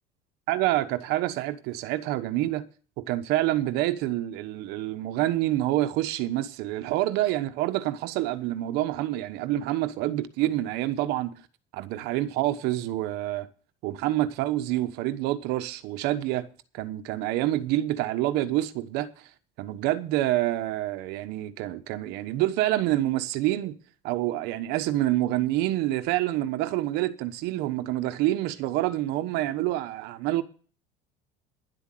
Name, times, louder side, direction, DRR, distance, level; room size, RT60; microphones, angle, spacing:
voice 1, 0.5-2.7 3.0-11.3 11.7-13.5 13.8-16.5 16.7-19.3 19.6-23.8 24.0-30.4, right 15 dB, 65° right, 1.1 m, -27 dB
11.0 x 7.9 x 7.7 m
cardioid pair, 165°, 18 cm